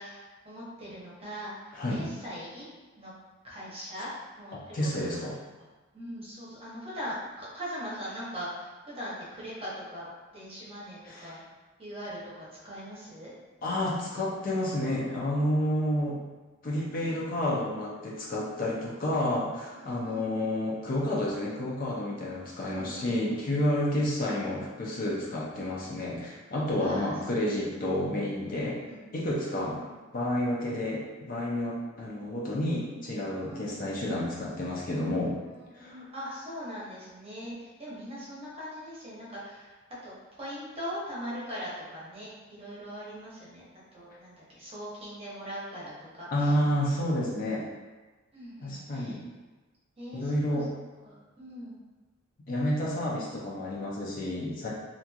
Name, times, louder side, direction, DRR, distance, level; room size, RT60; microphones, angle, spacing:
voice 1, 0.0-2.7 3.0-3.1 3.4-4.1 4.4-5.1 5.9-11.4 11.8-12.3 12.6-13.3 17.0-17.2 19.7-20.3 22.6-23.4 26.8-27.1 27.4-27.7 28.8-29.0 29.4-29.9 33.5-33.7 35.1-39.7 40.0-43.6 43.9-46.5 48.3-49.2 50.0-50.3 51.0-51.8, equal, 30° right, -8 dB, 0.8 m, -41 dB
voice 2, 1.7-2.0 4.5-5.3 11.1-11.4 13.6-16.2 16.6-28.8 29.1-29.8 30.1-35.4 35.7-36.0 46.3-47.6 48.6-49.2 50.1-50.7 52.5-54.7, left 1 dB, 45° left, -4 dB, 0.5 m, -30 dB
2.9 x 2.5 x 2.3 m, 1.2 s
head